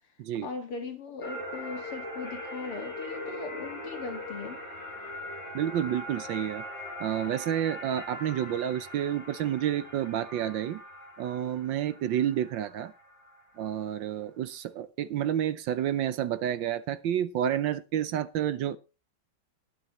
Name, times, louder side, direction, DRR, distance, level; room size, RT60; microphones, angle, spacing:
voice 1, 0.4-4.6, left 4 dB, 85° left, 2.9 m, -39 dB
sound 1, 1.2-13.8, left 1 dB, 30° left, 5.2 m, -41 dB
voice 2, 5.5-6.6 7.0-10.8 11.2-12.9 13.6-18.8, right 10 dB, 70° right, 1.3 m, -30 dB
20.5 x 6.9 x 3.1 m
omnidirectional pair, 2.4 m